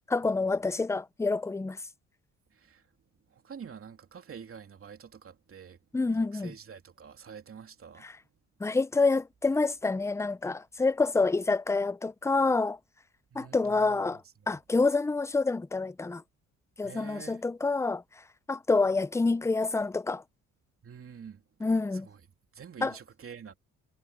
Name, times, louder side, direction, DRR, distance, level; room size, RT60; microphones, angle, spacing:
voice 1, 0.1-1.8 5.9-6.5 8.0-8.1 8.6-12.8 13.3-14.2 14.5-16.2 16.8-18.0 18.5-20.2 21.6-22.1 22.8-22.9, left 3 dB, 10° left, 0.5 m, -27 dB
voice 2, 2.5-2.9 3.3-5.8 6.1-8.1 13.3-14.5 16.8-17.4 20.8-22.2 22.5-23.5, right 7 dB, 45° right, 3.0 m, -47 dB
cardioid pair, 90°, 30 cm